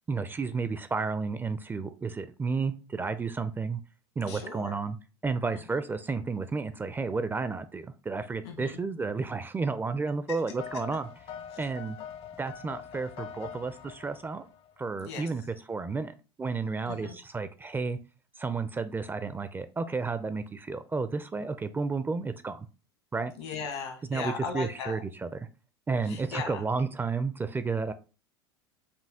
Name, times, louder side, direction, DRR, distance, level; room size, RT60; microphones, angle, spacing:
voice 1, 0.1-3.8 4.2-5.0 5.2-11.1 11.5-12.0 12.4-14.5 14.8-15.4 15.7-18.0 18.4-22.7 23.1-23.3 24.1-25.3 25.9-27.9, right 4 dB, 15° right, 11 dB, 0.4 m, -32 dB
voice 2, 4.3-4.8 5.5-5.8 8.4-8.8 10.3-10.4 11.5-11.7 15.0-15.3 16.9-17.1 23.4-25.0 26.0-26.6, left 5 dB, 75° left, 5 dB, 1.4 m, -38 dB
sound 1, 10.6-14.8, left 8 dB, 40° left, 0.5 m, -44 dB
5.6 x 2.3 x 3.4 m, 0.32 s
hypercardioid pair, 85°, 14 cm